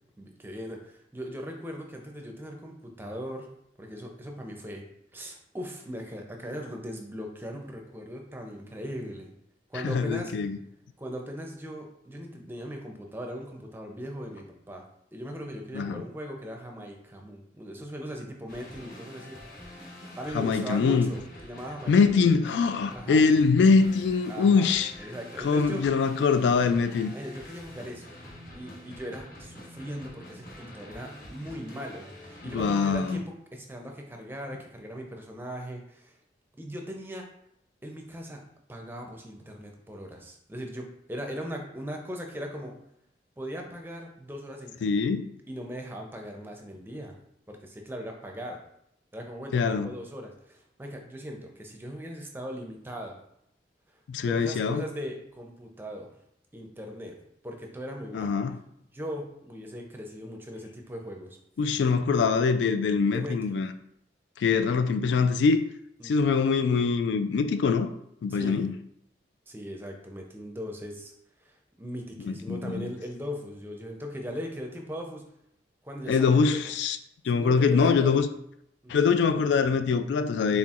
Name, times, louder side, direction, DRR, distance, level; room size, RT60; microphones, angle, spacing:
voice 1, 0.2-3.5 3.8-4.8 5.1-9.3 9.7-10.3 11.0-14.8 15.1-19.4 19.7-19.9 20.2-22.2 22.9-23.2 24.3-25.8 27.1-28.1 28.5-36.2 36.6-37.2 37.8-42.7 43.4-45.0 45.5-47.2 47.5-48.6 49.1-53.2 54.3-56.1 56.5-57.1 57.4-58.4 58.9-61.4 63.1-63.6 66.0-66.4 68.3-68.7 69.5-71.1 71.4-75.3 75.8-76.7 77.3-78.1 78.8-79.0, equal, 10° right, 2 dB, 0.5 m, -39 dB
voice 2, 9.8-10.6 15.7-16.0 20.3-21.1 21.9-24.9 25.4-27.1 32.5-33.2 44.8-45.3 49.5-49.9 54.1-54.8 58.1-58.6 61.6-63.7 64.4-65.7 66.0-67.9 68.2-68.7 72.3-72.9 76.1-77.0 77.2-78.3 78.9-80.6, left 5 dB, 80° left, 10 dB, 0.3 m, -23 dB
sound 1, 18.5-33.1, left 1 dB, 50° left, 1.0 m, -46 dB
4.2 x 3.7 x 2.4 m, 0.74 s
head